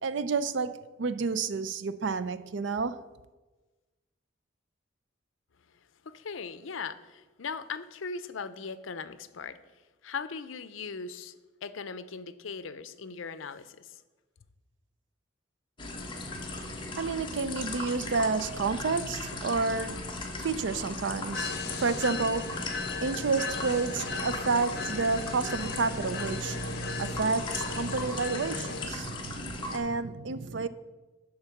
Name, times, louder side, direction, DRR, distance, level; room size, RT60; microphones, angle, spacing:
voice 1, 0.0-3.0 16.3-30.7, right 4 dB, 65° right, 0.5 m, -30 dB
voice 2, 6.0-9.6 10.0-11.3 11.6-14.0, left 5 dB, 80° left, 0.6 m, -39 dB
sound 1, 15.8-29.8, left 2 dB, 25° left, 1.1 m, -38 dB
sound 2, 21.3-28.9, left 4 dB, 55° left, 0.8 m, -37 dB
11.5 x 3.9 x 7.1 m
head